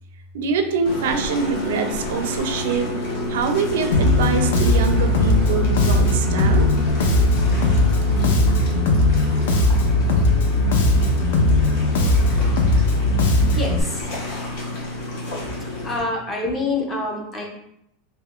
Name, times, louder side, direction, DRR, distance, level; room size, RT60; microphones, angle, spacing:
voice 1, 0.3-2.9 3.3-6.7, right 5 dB, 75° right, 7 dB, 0.4 m, -24 dB
sound 1, 0.8-16.0, equal, 60° left, 1.0 m, -29 dB
Bass guitar, 3.9-13.8, left 2 dB, 75° left, 0.5 m, -18 dB
voice 2, 13.4-14.0 15.8-17.4, left 2 dB, 15° left, 0 dB, 0.5 m, -26 dB
3.5 x 2.8 x 2.4 m, 0.77 s
supercardioid pair, 175°, 0 cm